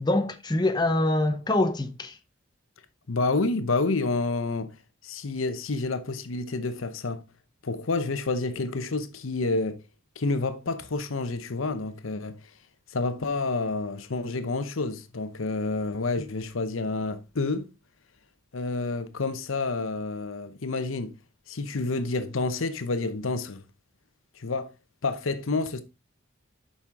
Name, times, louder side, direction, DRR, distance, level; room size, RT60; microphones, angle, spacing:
voice 1, 0.0-2.2, left 2 dB, 20° left, 0.7 m, -25 dB
voice 2, 3.1-4.7 5.0-7.2 7.6-9.8 10.2-12.4 12.9-17.7 18.5-21.1 21.5-23.6 24.4-24.7 25.0-25.8, left 3 dB, 85° left, 0.8 m, -29 dB
7.3 x 5.6 x 3.5 m
head